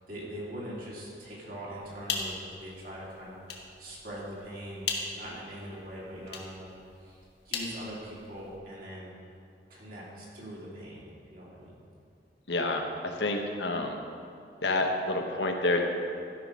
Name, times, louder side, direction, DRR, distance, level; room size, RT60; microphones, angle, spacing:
voice 1, 0.1-3.4 3.8-6.7 7.0-9.1 9.7-11.0 11.3-11.8, equal, 55° right, -6 dB, 2.9 m, -42 dB
sound 1, 1.8-8.6, left 5 dB, 65° left, 1.3 m, -40 dB
voice 2, 12.5-14.0 14.6-15.8, left 2 dB, 80° left, 3 dB, 1.1 m, -28 dB
13.0 x 5.8 x 5.4 m, 2.5 s
head